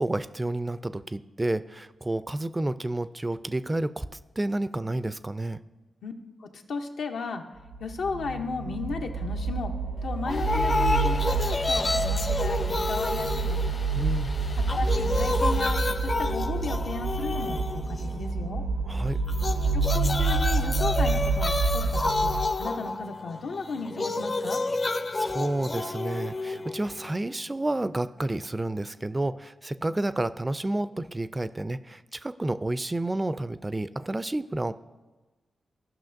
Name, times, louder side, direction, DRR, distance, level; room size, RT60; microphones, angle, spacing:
voice 1, 0.0-4.1 4.4-5.6 13.9-14.3 18.8-19.2 25.1-34.8, right 2 dB, 25° right, 15 dB, 0.3 m, -30 dB
voice 2, 6.4-7.4 7.8-9.8 10.0-13.6 14.7-18.6 19.7-22.3 22.6-24.6, left 4 dB, 80° left, 4 dB, 0.7 m, -35 dB
sound 1, 7.7-22.5, right 4 dB, 85° right, 1.2 m, -28 dB
sound 2, 10.3-15.7, left 2 dB, 60° left, 1.0 m, -43 dB
sound 3, 10.3-14.2 14.5-18.3 19.3-27.3, left 2 dB, 40° left, 0.5 m, -30 dB
13.5 x 5.7 x 2.6 m, 1.2 s
cardioid pair, 55°, 0 cm